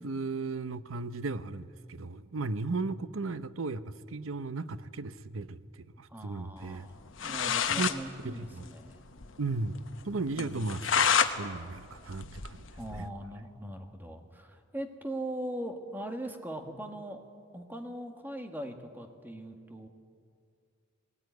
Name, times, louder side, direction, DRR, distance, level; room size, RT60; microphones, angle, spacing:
voice 1, 0.0-6.9 7.7-7.9 8.2-8.6 9.4-9.8 10.0-10.8 11.4-12.6 13.0-13.1, right 3 dB, 90° right, 14 dB, 0.8 m, -35 dB
voice 2, 6.1-7.0 7.2-9.0 10.3-10.7 12.7-17.2 17.5-19.9, right 1 dB, 10° right, 5 dB, 1.6 m, -40 dB
sound 1, 6.9-7.0 7.2-8.0 8.3-8.4 8.7-8.8 9.2-9.3 9.7-9.8 10.4-11.3 11.7-13.1, left 7 dB, 70° left, 1.1 m, -28 dB
20.0 x 17.5 x 9.4 m, 2.3 s
head